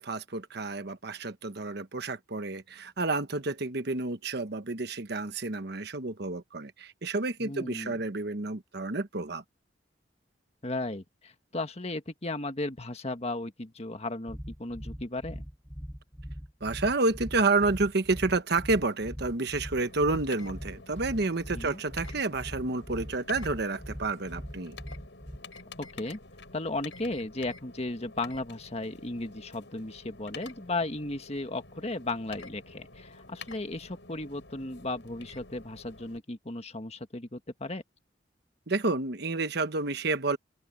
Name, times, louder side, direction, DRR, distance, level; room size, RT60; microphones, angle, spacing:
voice 1, 0.0-9.4 16.6-24.8 38.7-40.4, right 3 dB, 60° right, 1.1 m, -30 dB
voice 2, 7.4-8.0 10.6-15.4 21.5-21.8 25.8-26.2 26.5-37.8, left 2 dB, 35° left, 1.7 m, -35 dB
sound 1, 14.3-25.4, equal, 5° left, 6.8 m, -41 dB
sound 2, 19.7-36.2, left 3 dB, 70° left, 6.4 m, -49 dB
open air
head